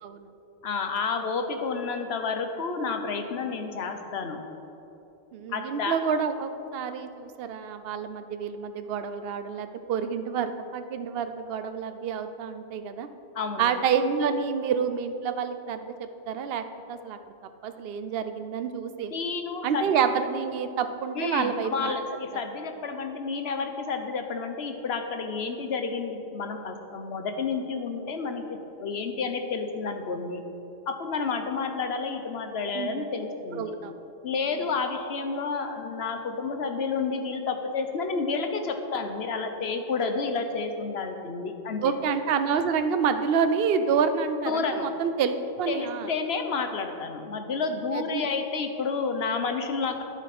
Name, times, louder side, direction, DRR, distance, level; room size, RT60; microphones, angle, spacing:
voice 1, 0.6-4.4 5.5-6.0 13.3-13.7 19.1-20.0 21.1-28.4 28.8-30.4 30.9-33.6 34.2-41.9 44.4-44.9 45.7-50.0, left 4 dB, 70° left, 6 dB, 1.2 m, -30 dB
voice 2, 5.3-13.1 13.6-15.9 16.3-17.2 17.6-19.1 19.6-21.9 22.3-22.4 25.5-25.6 32.7-33.0 33.6-33.9 41.8-46.1 47.9-48.3, right 6 dB, 65° right, 9 dB, 0.8 m, -28 dB
11.0 x 8.7 x 6.0 m, 2.9 s
omnidirectional pair, 1.1 m